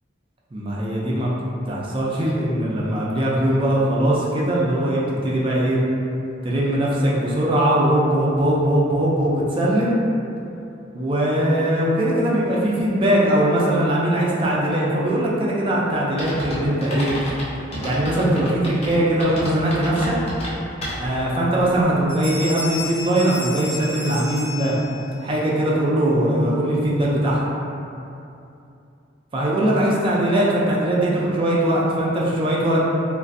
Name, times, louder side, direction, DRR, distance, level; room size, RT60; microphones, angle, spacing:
voice 1, 0.5-1.3 1.7-5.8 6.4-10.0 10.9-17.1 17.8-20.2 21.0-24.8 25.2-27.5 29.3-32.8, right 1 dB, 30° right, -5 dB, 0.4 m, -20 dB
sound 1, 16.2-21.3, equal, 35° left, 0.6 m, -31 dB
Bell, 21.7-21.8 22.1-25.2, left 3 dB, 10° left, 1.0 m, -33 dB
3.0 x 2.5 x 2.5 m, 2.7 s
head